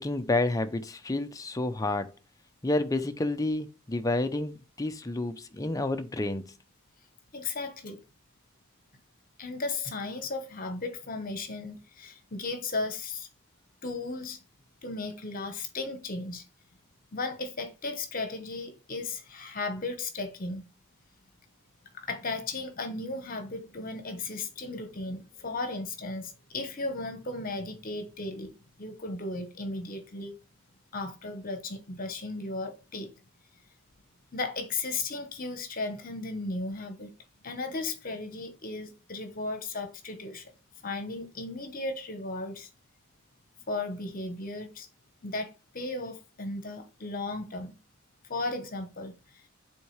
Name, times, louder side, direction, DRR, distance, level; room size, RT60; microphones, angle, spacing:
voice 1, 0.0-2.1 2.6-6.5, left 2 dB, 15° left, 0.5 m, -29 dB
voice 2, 7.3-8.0 9.4-13.3 13.8-14.4 14.8-16.4 17.1-20.7 22.0-28.5 28.8-30.4 30.9-33.1 34.3-37.1 37.4-40.4 40.8-42.7 43.7-44.9 45.2-47.7 48.3-49.1, left 3 dB, 40° left, 1.0 m, -35 dB
8.3 x 3.6 x 3.2 m
head